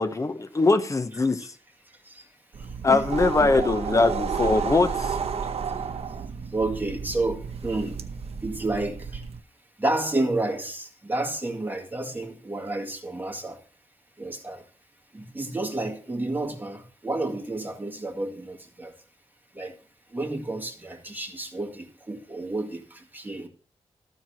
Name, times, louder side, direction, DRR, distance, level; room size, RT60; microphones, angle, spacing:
voice 1, 0.0-1.5 2.8-5.2, left 3 dB, 30° left, 0.9 m, -22 dB
sound 1, 2.5-9.4, right 6 dB, 65° right, 0.8 m, -32 dB
voice 2, 2.6-3.0 3.4-3.6 6.5-8.0 8.4-9.2 9.8-13.6 14.2-14.6 15.1-18.9 19.5-19.8 20.1-23.5, right 2 dB, 15° right, 2.1 m, -30 dB
13.5 x 4.7 x 5.9 m
wide cardioid pair, 110°, 11 cm